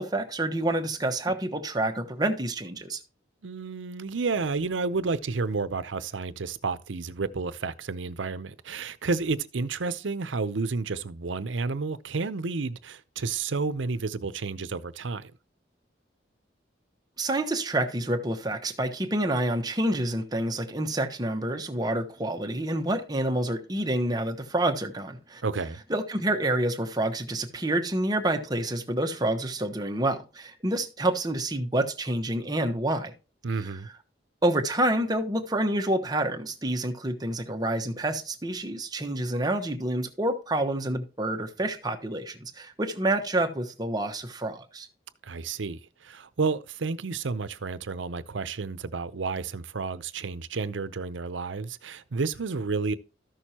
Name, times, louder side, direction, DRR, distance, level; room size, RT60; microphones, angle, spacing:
voice 1, 0.0-3.0 17.2-25.4 25.9-33.1 34.4-44.9, right 1 dB, 20° right, 1.1 m, -28 dB
voice 2, 3.4-15.3 25.4-25.8 33.4-33.9 45.2-53.0, right 4 dB, 85° right, 0.7 m, -31 dB
13.5 x 6.4 x 2.9 m
head